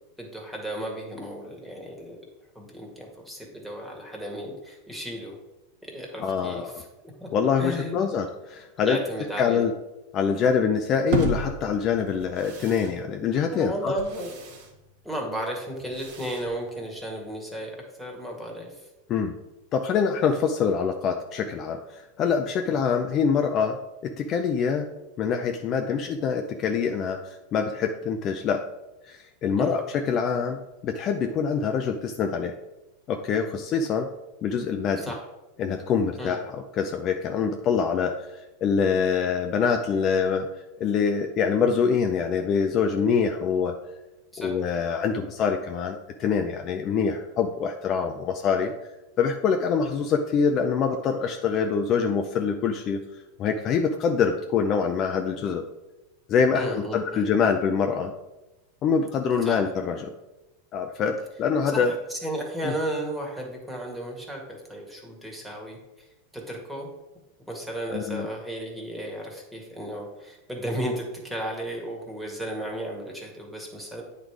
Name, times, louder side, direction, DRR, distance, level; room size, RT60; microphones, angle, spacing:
voice 1, 0.2-2.2 2.6-5.4 5.8-6.9 7.2-7.3 7.6-8.1 8.8-9.6 13.5-14.3 15.0-18.9 22.7-22.8 29.6-29.8 35.0-35.2 36.2-36.4 44.3-44.6 56.5-57.3 59.4-59.6 61.7-66.1 66.3-66.9 67.5-74.0, right 1 dB, ahead, -1 dB, 1.9 m, -34 dB
voice 2, 6.2-6.8 7.3-9.0 9.4-9.7 10.1-13.9 19.1-19.3 19.7-24.9 25.2-28.6 29.1-32.5 33.1-34.1 34.4-35.1 35.6-40.5 40.8-43.7 44.4-48.7 49.2-53.0 53.4-55.6 56.3-58.1 58.8-60.1 60.7-61.9 62.6-62.7 67.9-68.3, left 6 dB, 40° left, 6 dB, 0.5 m, -25 dB
sound 1, 11.1-17.3, right 3 dB, 60° right, 1.6 m, -35 dB
8.9 x 3.3 x 4.7 m, 1.0 s
hypercardioid pair, 95°, 0 cm